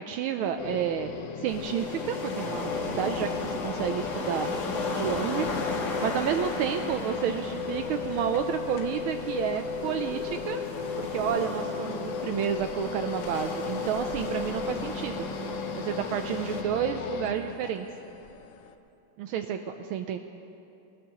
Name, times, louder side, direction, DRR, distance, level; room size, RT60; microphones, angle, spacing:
voice 1, 0.0-4.6 4.9-10.6 11.0-15.3 15.7-17.9 19.2-20.2, right 9 dB, 80° right, 6 dB, 1.4 m, -30 dB
sound 1, 0.6-17.3, left 5 dB, 65° left, 1.3 m, -35 dB
sound 2, 1.5-16.6, left 3 dB, 50° left, 1.8 m, -36 dB
sound 3, 3.4-18.8, left 6 dB, 90° left, 0.7 m, -45 dB
20.5 x 19.0 x 3.0 m, 2.7 s
omnidirectional pair, 2.4 m